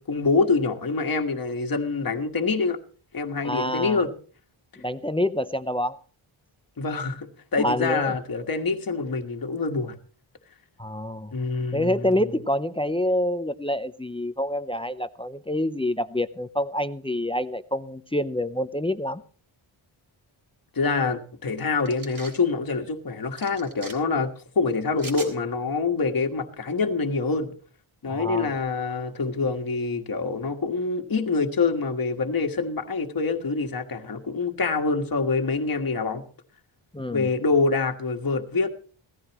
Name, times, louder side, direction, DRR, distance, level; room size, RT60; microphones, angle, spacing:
voice 1, 0.0-2.8 3.1-4.1 6.8-9.9 11.3-12.3 20.7-27.5 28.0-36.2 37.1-38.7, left 4 dB, 45° left, 1.6 m, -26 dB
voice 2, 3.4-4.0 4.8-6.0 7.6-8.2 10.8-11.3 11.7-19.2 28.1-28.5 36.9-37.3, left 1 dB, 10° left, 0.5 m, -27 dB
sound 1, 21.9-22.4 23.4-23.9 25.0-25.3, right 2 dB, 45° right, 3.5 m, -39 dB
17.5 x 14.5 x 3.0 m
wide cardioid pair, 115°, 49 cm